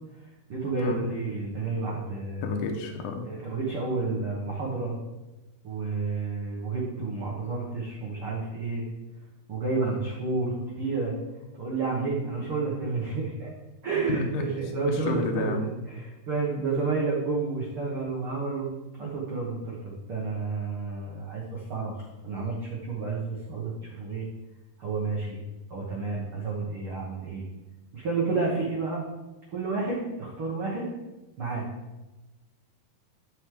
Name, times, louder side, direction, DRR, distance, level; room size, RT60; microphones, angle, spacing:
voice 1, 0.5-2.6 3.2-5.0 5.6-8.8 9.5-11.2 11.5-13.5 13.8-18.7 19.0-21.9 22.2-24.3 24.8-25.4 25.7-27.4 27.9-29.0 29.5-30.9 31.4-31.6, right 4 dB, 80° right, -4 dB, 1.2 m, -30 dB
voice 2, 2.4-3.3 14.1-14.4 14.9-15.7, left 3 dB, 70° left, 3 dB, 1.9 m, -30 dB
11.5 x 6.3 x 3.8 m, 1.1 s
omnidirectional pair, 4.7 m